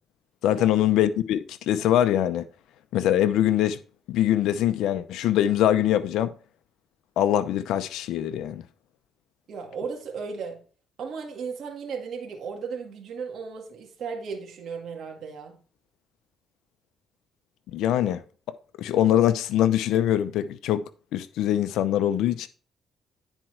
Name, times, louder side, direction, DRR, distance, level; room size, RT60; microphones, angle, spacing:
voice 1, 0.4-2.5 2.9-3.8 4.1-6.3 7.2-8.6 17.7-18.2 18.8-20.8 21.1-22.5, left 11 dB, 85° left, 0.7 m, -23 dB
voice 2, 9.5-10.6 11.0-15.6, right 5 dB, 65° right, 1.8 m, -35 dB
10.0 x 4.5 x 4.4 m
cardioid pair, 90°, 0 cm